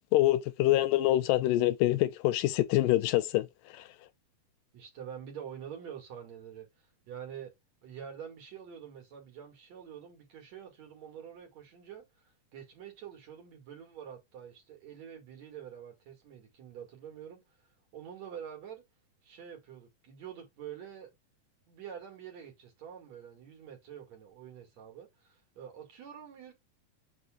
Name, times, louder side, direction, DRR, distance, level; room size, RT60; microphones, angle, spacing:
voice 1, 0.1-3.5 3.7-3.8, left 15 dB, 80° left, 2.2 m, -25 dB
voice 2, 4.7-7.5 7.8-17.4 17.9-18.8 19.2-21.1 21.7-26.5, right 8 dB, 55° right, 3.2 m, -46 dB
7.0 x 6.2 x 2.4 m
omnidirectional pair, 3.9 m